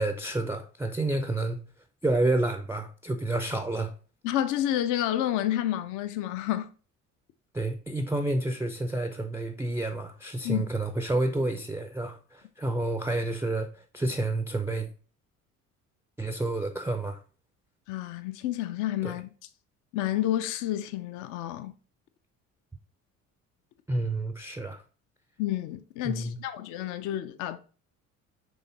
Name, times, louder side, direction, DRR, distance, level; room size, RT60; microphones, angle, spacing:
voice 1, 0.0-1.6 2.0-3.9 7.5-14.9 16.2-17.2 19.0-19.2 23.9-24.8 26.0-26.4, right 2 dB, 5° right, 0.4 m, -29 dB
voice 2, 4.2-6.7 10.4-10.6 17.9-19.3 19.9-21.7 25.4-27.6, left 12 dB, 45° left, 0.5 m, -29 dB
6.2 x 3.2 x 2.7 m
figure-of-eight pair, 55°, 42 cm